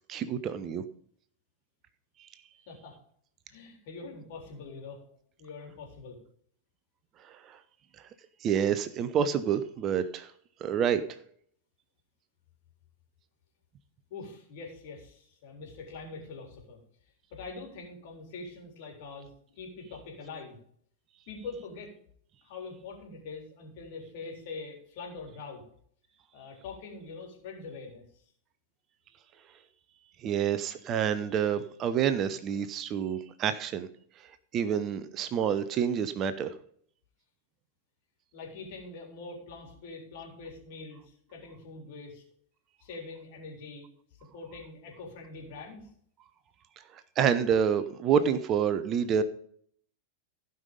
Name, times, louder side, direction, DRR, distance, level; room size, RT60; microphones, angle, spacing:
voice 1, 0.1-0.8 2.2-2.3 7.2-7.6 8.4-10.3 10.6-11.0 30.2-33.9 34.5-36.5 47.2-49.2, right 8 dB, 30° right, 12 dB, 0.8 m, -28 dB
voice 2, 3.5-5.1 5.4-6.2 14.1-16.8 17.3-20.6 21.3-21.9 22.4-25.6 26.3-28.0 38.3-42.2 42.8-43.9 44.3-45.9, left 4 dB, 50° left, 0 dB, 3.7 m, -44 dB
16.0 x 5.6 x 5.2 m, 0.62 s
figure-of-eight pair, 90°, 0 cm